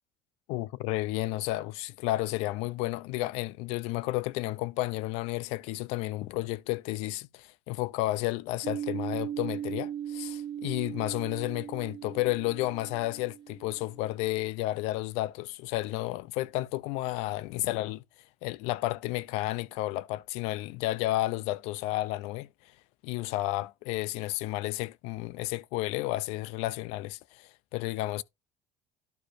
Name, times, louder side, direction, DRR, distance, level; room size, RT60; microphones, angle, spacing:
voice 1, 0.5-18.0 18.4-22.5 23.0-28.2, left 18 dB, 75° left, 0.5 m, -32 dB
sound 1, 8.6-14.2, right 10 dB, 50° right, 0.9 m, -38 dB
11.5 x 5.0 x 2.6 m
supercardioid pair, 100°, 11 cm